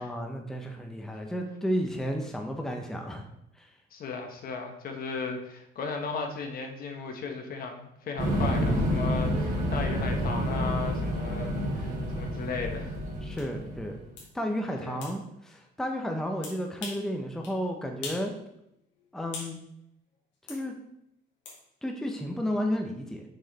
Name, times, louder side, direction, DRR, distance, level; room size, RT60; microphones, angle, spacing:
voice 1, 0.0-3.2 3.6-3.7 13.2-14.0 14.3-18.3 19.1-19.6 20.5-20.7 21.8-23.2, equal, ahead, 2 dB, 0.7 m, -32 dB
voice 2, 3.9-13.0 14.8-15.0, left 4 dB, 50° left, 3 dB, 1.2 m, -36 dB
sound 1, 8.2-14.0, equal, 45° right, 2.2 m, -29 dB
sound 2, 13.4-13.5 14.2-14.3 15.0-15.2 16.4-17.1 17.4-17.6 18.0-18.3 18.6-19.6 20.5-20.6 21.5-21.6, left 4 dB, 80° left, 2.3 m, -41 dB
6.3 x 4.7 x 4.1 m, 0.81 s
cardioid pair, 125°, 19 cm